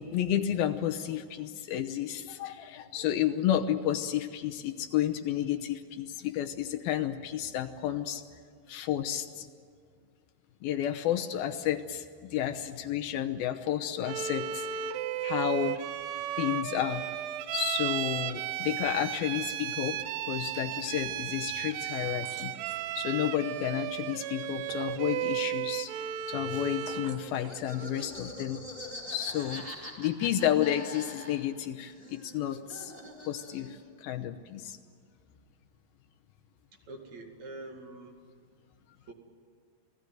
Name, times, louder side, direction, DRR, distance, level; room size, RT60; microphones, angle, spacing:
voice 1, 0.0-8.2 8.7-9.5 10.6-14.8 15.2-15.8 16.4-17.1 17.5-22.5 23.0-25.9 26.3-28.6 29.1-29.7 30.0-32.9 33.3-34.8, left 11 dB, 75° left, 6 dB, 2.6 m, -31 dB
Bowed string instrument, 14.0-27.2, right 11 dB, 85° right, 3.0 m, -34 dB
sound 1, 22.2-22.9 24.3-25.1 26.7-27.7, right 7 dB, 65° right, 2.9 m, -49 dB
Laughter, 26.5-31.6 31.9-33.8, left 1 dB, 10° right, 4.0 m, -44 dB
voice 2, 36.7-38.2 39.1-39.2, right 2 dB, 50° right, 2 dB, 3.3 m, -45 dB
28.0 x 18.5 x 9.3 m, 2.1 s
omnidirectional pair, 4.6 m